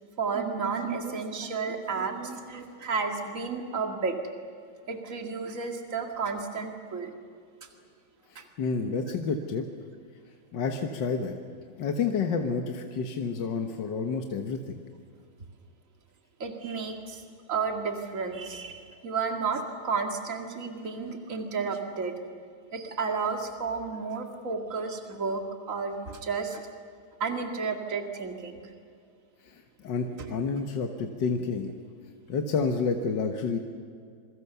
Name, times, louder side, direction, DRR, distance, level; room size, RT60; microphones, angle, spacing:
voice 1, 0.2-4.2 4.9-7.1 8.4-8.5 16.4-17.2 17.5-22.2 22.7-26.7 27.2-28.6 30.2-30.3, right 5 dB, 40° right, 3 dB, 2.4 m, -32 dB
voice 2, 8.3-9.7 10.5-11.3 11.8-14.6 29.5-31.8 32.3-33.6, left 5 dB, 65° left, 4 dB, 2.0 m, -29 dB
26.5 x 23.5 x 6.9 m, 2.2 s
omnidirectional pair, 2.1 m